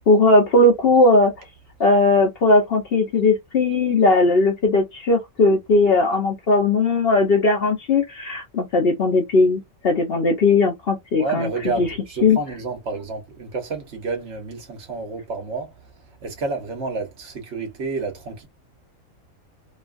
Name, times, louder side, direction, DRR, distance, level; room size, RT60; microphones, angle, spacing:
voice 1, 0.1-1.3 1.8-11.5 11.8-11.9 12.2-12.4, left 2 dB, 55° left, 0.8 m, -18 dB
voice 2, 11.2-15.9 16.2-18.5, right 3 dB, 60° right, 1.2 m, -30 dB
3.0 x 2.3 x 2.4 m
omnidirectional pair, 1.4 m